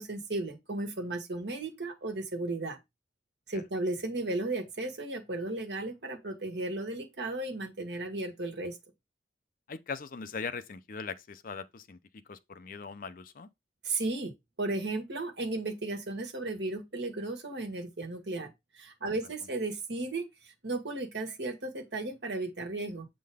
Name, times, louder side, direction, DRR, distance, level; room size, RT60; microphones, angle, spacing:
voice 1, 0.0-2.8 3.5-8.8 13.8-14.3 14.6-18.5 18.8-23.1, right 2 dB, 75° right, 1.6 m, -35 dB
voice 2, 9.7-13.5 19.4-19.5, left 5 dB, 50° left, 0.6 m, -40 dB
7.5 x 3.8 x 3.5 m
head